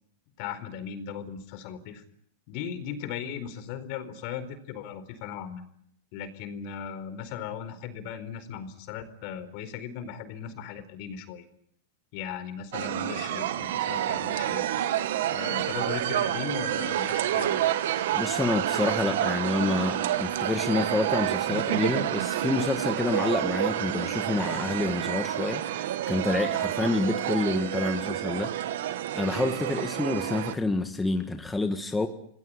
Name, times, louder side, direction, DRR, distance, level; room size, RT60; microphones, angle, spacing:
voice 1, 0.4-2.0 2.5-5.6 6.1-11.4 12.1-14.6 15.3-17.6, left 8 dB, 50° left, 11 dB, 4.4 m, -37 dB
sound 1, 12.7-30.6, right 12 dB, 70° right, 2.1 m, -29 dB
voice 2, 18.1-25.6 26.1-28.5 29.1-32.1, left 3 dB, 10° left, 6 dB, 1.7 m, -28 dB
28.0 x 19.0 x 9.8 m, 0.71 s
supercardioid pair, 135°, 0 cm